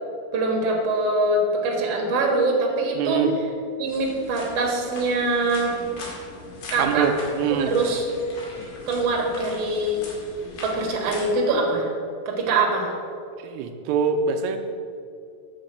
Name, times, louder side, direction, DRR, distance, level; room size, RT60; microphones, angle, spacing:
voice 1, 0.3-3.2 3.8-5.8 6.7-7.1 7.5-8.1 8.9-10.0 10.6-11.9 12.3-12.9, right 2 dB, 50° right, -1 dB, 2.0 m, -23 dB
voice 2, 3.0-3.3 6.8-7.7 13.4-14.6, right 6 dB, 90° right, 5 dB, 2.9 m, -23 dB
sound 1, 3.9-11.3, left 2 dB, 60° left, 3.6 m, -40 dB
9.3 x 5.2 x 7.7 m, 2.4 s
omnidirectional pair, 4.6 m